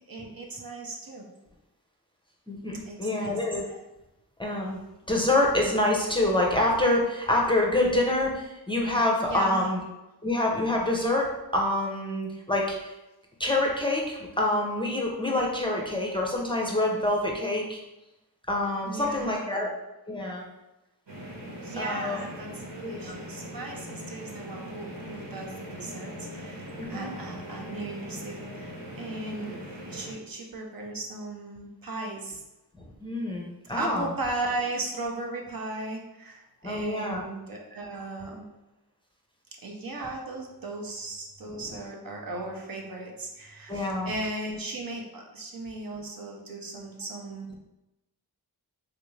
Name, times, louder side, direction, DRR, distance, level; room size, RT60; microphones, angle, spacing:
voice 1, 0.1-1.2 2.9-3.4 9.2-9.7 18.8-19.7 21.6-29.6 29.9-32.4 33.7-38.5 39.6-47.6, right 2 dB, 60° right, 0 dB, 0.7 m, -36 dB
voice 2, 2.5-3.7 4.4-4.8 5.1-9.8 10.2-12.9 13.4-17.8 18.5-19.7 20.1-20.4 21.8-22.2 22.8-23.2 26.8-27.1 33.0-34.1 36.6-37.2 41.5-41.6 43.7-44.1, left 1 dB, 15° left, -2 dB, 0.5 m, -26 dB
sound 1, 21.1-30.1, equal, 80° right, 1.2 m, -41 dB
3.4 x 2.5 x 3.1 m, 0.97 s
wide cardioid pair, 80°, 39 cm